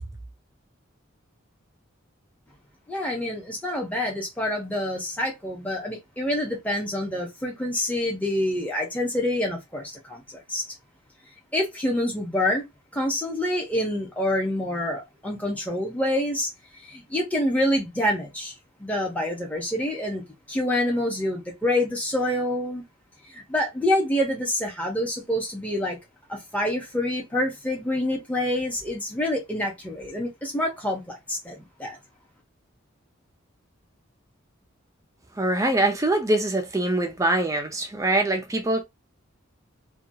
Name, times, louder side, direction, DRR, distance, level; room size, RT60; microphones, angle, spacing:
voice 1, 2.9-10.6 11.5-12.6 12.9-16.5 16.8-18.5 18.8-20.2 20.5-22.8 23.3-26.0 26.3-32.0, left 1 dB, 5° left, 0.8 m, -27 dB
voice 2, 35.4-38.8, right 2 dB, 15° right, 0.4 m, -23 dB
2.7 x 2.2 x 2.7 m
head